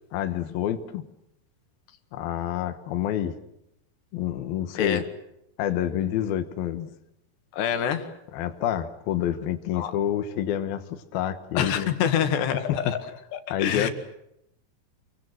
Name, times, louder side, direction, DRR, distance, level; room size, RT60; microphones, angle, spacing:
voice 1, 0.1-1.1 2.1-3.3 4.1-5.0 5.6-6.9 8.3-11.9 12.7-12.9 13.5-13.9, left 11 dB, 70° left, 8 dB, 3.0 m, -28 dB
voice 2, 7.5-8.1 9.7-9.9 11.6-13.0 13.3-13.9, left 8 dB, 90° left, 8 dB, 4.1 m, -26 dB
27.0 x 23.5 x 7.9 m, 0.82 s
omnidirectional pair, 4.7 m